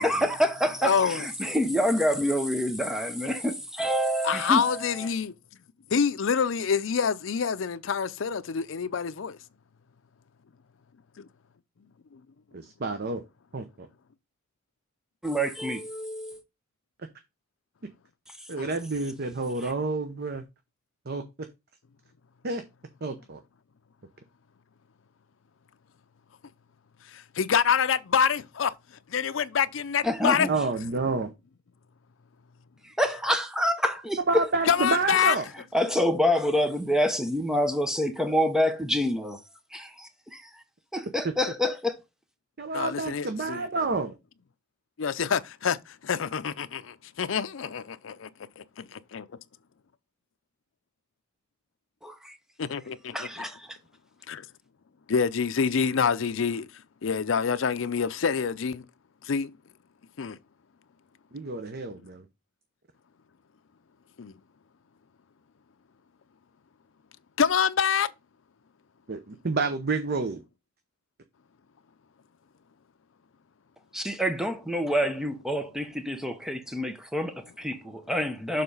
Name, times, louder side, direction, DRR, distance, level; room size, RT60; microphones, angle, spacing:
voice 1, 0.0-4.9 15.2-16.4 30.0-30.5 33.0-34.4 35.7-39.4 39.7-40.4 40.9-41.9 52.0-52.3 53.1-53.7 73.9-78.6, equal, 5° right, 0.9 m, -27 dB
voice 2, 0.8-1.3 4.2-5.3 5.9-9.4 11.2-11.3 18.6-18.7 27.1-28.7 29.1-30.5 34.7-35.4 42.7-43.6 45.0-48.3 48.6-49.3 52.6-53.3 54.3-54.4 55.1-56.7 57.0-58.8 59.2-59.5 60.2-60.4 64.2-64.3 67.4-68.1, left 6 dB, 75° left, 0.5 m, -26 dB
voice 3, 12.5-13.2 13.5-13.9 18.5-20.4 21.1-21.2 22.4-22.6 23.0-23.4 30.5-31.3 34.3-35.4 41.2-41.3 42.6-44.2 61.3-62.2 69.1-70.4, right 3 dB, 55° right, 0.8 m, -29 dB
6.7 x 3.8 x 5.4 m
head